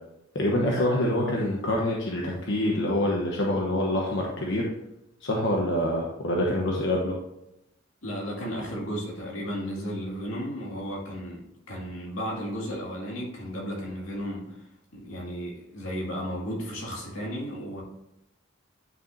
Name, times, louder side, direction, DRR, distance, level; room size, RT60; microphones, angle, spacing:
voice 1, 0.3-4.7 5.2-7.1, left 1 dB, 65° left, -2 dB, 1.1 m, -26 dB
voice 2, 8.0-14.7 14.9-17.8, equal, 90° left, -3 dB, 2.5 m, -34 dB
9.9 x 6.1 x 2.7 m, 0.86 s
head